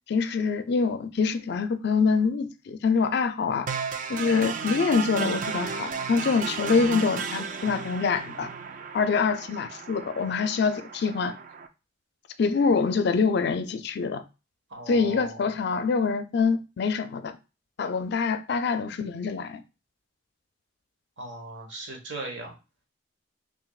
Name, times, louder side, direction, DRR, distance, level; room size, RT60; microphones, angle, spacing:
voice 1, 0.1-3.7 4.1-8.5 8.9-11.3 12.4-14.2 14.9-17.4 17.8-19.6, left 5 dB, 60° left, 0.4 m, -25 dB
sound 1, 3.7-11.7, right 6 dB, 40° right, 0.4 m, -34 dB
voice 2, 14.7-15.5 21.2-22.5, right 2 dB, 60° right, 1.2 m, -38 dB
5.8 x 2.7 x 2.3 m
head